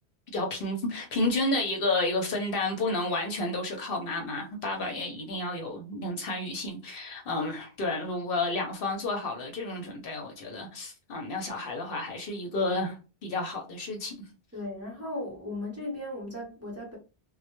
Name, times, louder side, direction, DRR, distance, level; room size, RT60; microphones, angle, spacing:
voice 1, 0.3-13.0 13.2-14.2, left 2 dB, 65° left, 0.7 m, -31 dB
voice 2, 14.5-17.0, left 1 dB, 15° right, 0.7 m, -36 dB
2.1 x 2.1 x 2.9 m
omnidirectional pair, 1.1 m